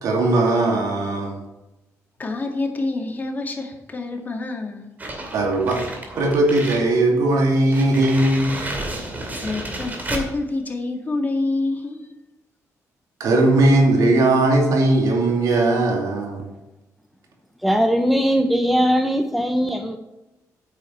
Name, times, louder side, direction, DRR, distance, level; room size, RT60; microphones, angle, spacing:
voice 1, 0.0-1.4 5.3-5.8 6.2-8.6 13.2-16.5, right 2 dB, 75° right, 0 dB, 2.6 m, -18 dB
voice 2, 2.2-4.9 9.3-12.1, left 2 dB, 30° left, 1 dB, 1.9 m, -27 dB
sound 1, 5.0-6.9 7.3-7.4 7.7-10.3, right 1 dB, 30° right, 2.5 m, -31 dB
voice 3, 17.6-20.0, equal, ahead, 6 dB, 0.7 m, -20 dB
9.4 x 6.8 x 4.5 m, 1.0 s
cardioid pair, 100°, 6 cm